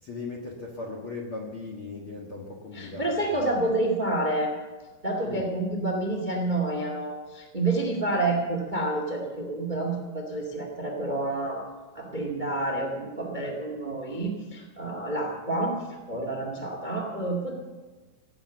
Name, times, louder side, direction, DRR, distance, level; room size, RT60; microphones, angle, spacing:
voice 1, 0.0-3.5 5.2-5.5, left 3 dB, 60° left, -1 dB, 1.4 m, -38 dB
voice 2, 2.7-4.5 5.0-11.6 11.9-15.7 16.1-17.5, right 2 dB, 40° right, 2 dB, 0.6 m, -29 dB
18.5 x 8.6 x 6.9 m, 1.3 s
omnidirectional pair, 4.9 m